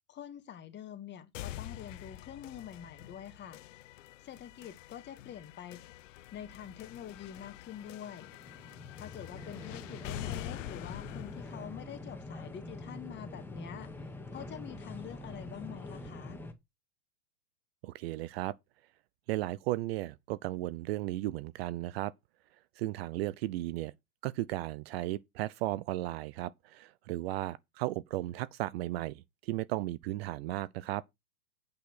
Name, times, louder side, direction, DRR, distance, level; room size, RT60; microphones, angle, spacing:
voice 1, 0.1-3.6 4.2-5.8 6.3-8.3 9.0-14.1 14.3-16.4, left 9 dB, 25° left, 1.8 m, -46 dB
sound 1, 1.3-13.3, left 14 dB, 55° left, 0.9 m, -46 dB
sound 2, 8.1-16.5, left 2 dB, 5° left, 2.0 m, -45 dB
voice 2, 17.8-18.6 19.3-22.1 22.8-23.9 24.2-31.0, right 16 dB, 45° right, 0.6 m, -35 dB
8.8 x 6.0 x 6.2 m
hypercardioid pair, 125°, 45 cm